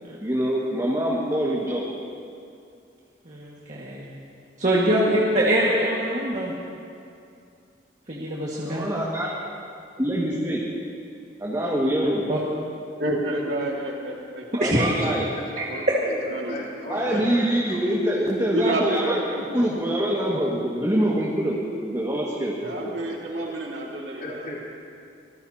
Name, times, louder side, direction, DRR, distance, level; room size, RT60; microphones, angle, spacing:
voice 1, 0.2-1.8 4.9-5.2 8.6-9.3 10.0-10.6 11.4-12.3 14.5-15.3 16.9-19.2 19.5-22.6, equal, 20° right, -5 dB, 1.9 m, -25 dB
voice 2, 3.3-4.1 4.6-6.5 8.1-8.9 12.3-12.4 14.6-14.9, right 1 dB, 45° right, -6 dB, 1.8 m, -23 dB
voice 3, 13.0-14.8 15.7-17.3 18.5-19.5 22.6-24.5, right 1 dB, 75° right, -2 dB, 2.1 m, -30 dB
voice 4, 15.0-17.8 22.6-23.2 24.2-24.7, left 1 dB, 50° left, -4 dB, 3.4 m, -38 dB
25.0 x 19.5 x 2.9 m, 2.4 s
head